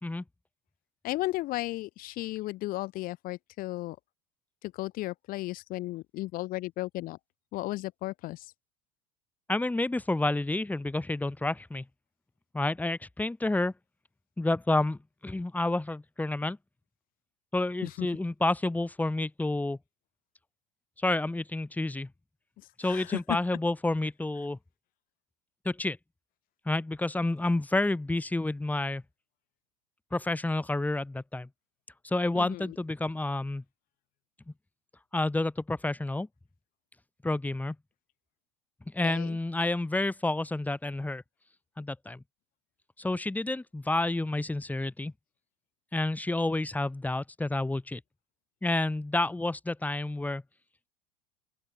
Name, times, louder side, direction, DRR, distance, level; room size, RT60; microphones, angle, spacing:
voice 1, 1.0-4.0 4.6-7.2 7.5-8.5 17.8-18.1 22.8-23.2 32.3-32.7 39.0-39.4, left 18 dB, 45° left, 1.2 m, -35 dB
voice 2, 9.5-11.8 12.5-13.7 14.4-16.6 17.5-19.8 21.0-22.1 22.8-24.6 25.6-26.0 26.7-29.0 30.1-31.5 32.0-33.6 35.1-36.3 37.2-37.7 38.9-41.2 41.8-42.2 43.0-45.1 45.9-48.0 48.6-50.4, left 2 dB, 5° left, 2.9 m, -29 dB
open air
figure-of-eight pair, 75°, 21 cm